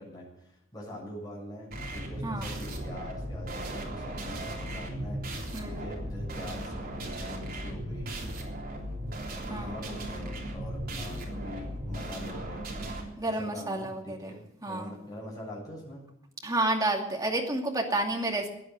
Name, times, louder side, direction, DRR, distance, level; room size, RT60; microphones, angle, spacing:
voice 1, 0.0-5.2 5.6-8.4 9.4-16.0, left 1 dB, 20° left, -4 dB, 7.5 m, -43 dB
sound 1, 1.7-13.0, right 1 dB, 50° right, 3.5 m, -37 dB
voice 2, 13.2-14.3 14.6-14.9 16.4-18.5, right 2 dB, 20° right, 1 dB, 2.5 m, -30 dB
16.0 x 10.0 x 7.8 m, 0.77 s
head